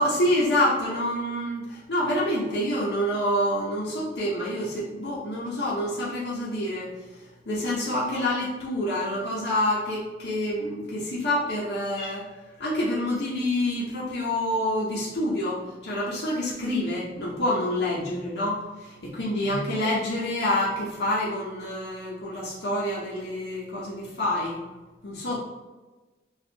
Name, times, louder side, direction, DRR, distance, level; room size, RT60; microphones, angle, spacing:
voice 1, 0.0-12.3 12.6-24.6 25.0-25.4, left 1 dB, 70° left, -6 dB, 0.7 m, -27 dB
4.2 x 2.4 x 2.8 m, 1.2 s
head